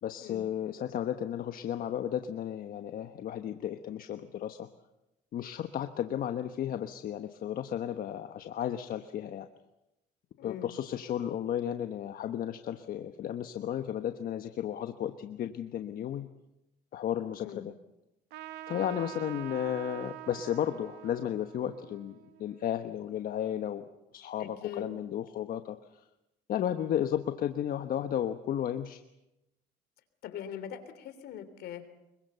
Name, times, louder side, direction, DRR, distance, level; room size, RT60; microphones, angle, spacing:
voice 1, 0.0-4.7 5.3-9.5 10.4-16.3 16.9-17.7 18.7-25.8 26.5-29.0, left 10 dB, 60° left, 8 dB, 1.2 m, -34 dB
voice 2, 10.4-10.7 17.4-17.7 18.7-18.9 24.4-24.8 30.2-31.9, left 9 dB, 75° left, 10 dB, 3.2 m, -42 dB
Trumpet, 18.3-23.3, right 15 dB, 85° right, 0.9 m, -46 dB
25.0 x 23.0 x 6.9 m, 0.91 s
cardioid pair, 110°, 17 cm